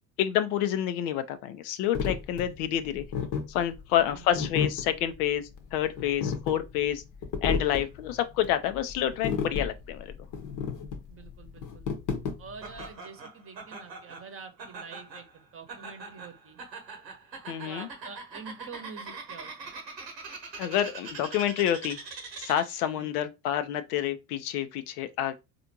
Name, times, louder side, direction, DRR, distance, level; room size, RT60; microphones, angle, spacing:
voice 1, 0.2-3.0 3.5-7.0 7.4-10.1 17.5-17.9 20.6-22.0 22.4-25.3, left 11 dB, 65° left, 0.6 m, -28 dB
sound 1, 1.9-12.9, left 6 dB, 40° left, 0.9 m, -33 dB
voice 2, 4.0-4.5 11.1-11.9 12.4-16.6 17.6-19.7 22.9-23.3, right 5 dB, 25° right, 1.0 m, -46 dB
Laughter, 12.6-22.9, right 4 dB, 90° right, 1.0 m, -43 dB
4.2 x 2.6 x 2.8 m
figure-of-eight pair, 60°, 49 cm